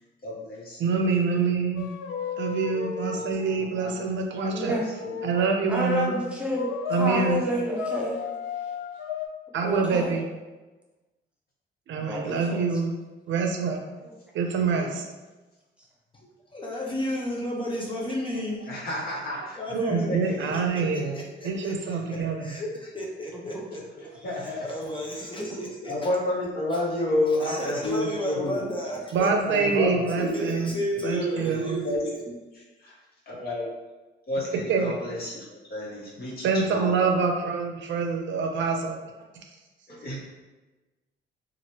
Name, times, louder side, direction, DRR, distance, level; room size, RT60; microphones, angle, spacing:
voice 1, 0.2-1.0 1.3-1.4 3.1-3.2 3.6-3.9 4.3-4.9 7.1-7.5 18.7-19.6 19.9-20.5 22.1-22.2 24.2-24.7 25.9-28.6 29.4-30.1 31.8-32.0 33.3-33.7 34.3-37.1 39.9-40.2, left 1 dB, 50° left, -6 dB, 1.2 m, -30 dB
voice 2, 0.8-1.9 2.4-4.8 5.2-6.2 6.9-7.4 9.5-10.3 11.9-12.9 13.3-13.8 14.3-15.0 19.7-21.2 21.4-22.5 29.1-30.7 31.0-31.8 34.7-35.0 36.4-39.0, right 5 dB, 70° right, 3 dB, 0.5 m, -26 dB
sound 1, 1.8-5.7 6.5-7.2 7.8-9.3, left 7 dB, 80° left, 0.4 m, -34 dB
voice 3, 4.5-4.9 5.7-8.2 9.6-10.2 12.1-12.6 14.0-14.1 14.7-15.0 20.2-20.3 23.5-23.6 25.4-25.6, equal, 5° right, -4 dB, 0.8 m, -29 dB
voice 4, 16.1-18.7 19.2-19.3 19.6-20.1 20.4-24.1 24.4-26.1 26.7-26.8 27.4-29.7 30.2-32.4, equal, 25° left, -2 dB, 0.6 m, -33 dB
2.9 x 2.5 x 2.9 m, 1.2 s
cardioid pair, 90°, 20 cm